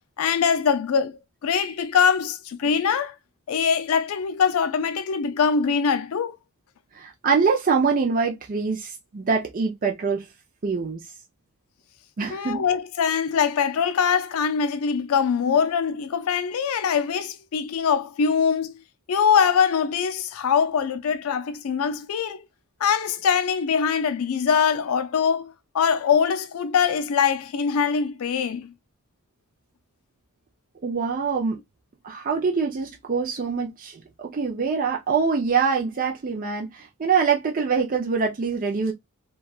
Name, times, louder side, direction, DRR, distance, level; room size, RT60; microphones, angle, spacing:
voice 1, 0.2-3.1 3.5-6.4 12.3-18.8 19.1-22.4 22.8-28.7, left 6 dB, 70° left, 0.4 m, -23 dB
voice 2, 6.9-10.3 10.6-11.0 12.2-12.6 30.8-31.6 32.0-38.9, right 5 dB, 40° right, 0.5 m, -24 dB
3.0 x 2.3 x 2.3 m
head